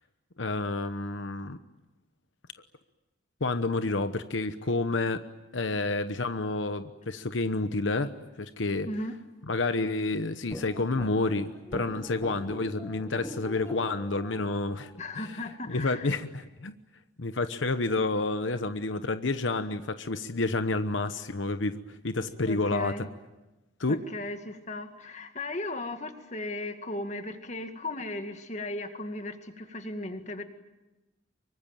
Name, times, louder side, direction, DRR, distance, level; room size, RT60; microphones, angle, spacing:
voice 1, 0.4-1.6 3.4-5.2 5.5-8.9 9.5-14.9 15.2-15.4 15.7-16.7 17.2-23.1 23.8-24.0, left 3 dB, 85° left, 10 dB, 1.1 m, -29 dB
voice 2, 8.8-9.2 15.0-16.1 22.4-23.1 23.9-30.4, left 2 dB, 40° left, 7 dB, 2.1 m, -36 dB
sound 1, 10.5-15.6, equal, 15° left, 2.2 m, -43 dB
24.5 x 23.5 x 9.1 m, 1.1 s
head